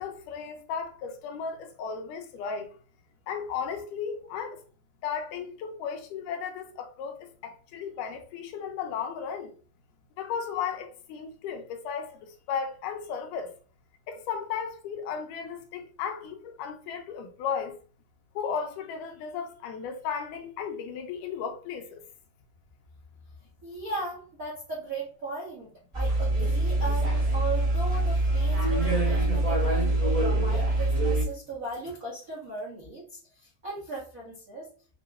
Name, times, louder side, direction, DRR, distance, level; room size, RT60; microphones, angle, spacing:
voice 1, 0.0-2.7 3.3-4.6 5.0-9.5 10.2-13.5 14.1-17.7 18.4-22.0, left 6 dB, 85° left, 2.2 m, -35 dB
voice 2, 23.6-34.7, right 2 dB, 85° right, 0.7 m, -37 dB
sound 1, 25.9-31.2, right 2 dB, 35° right, 0.5 m, -24 dB
5.8 x 2.9 x 2.5 m
omnidirectional pair, 3.8 m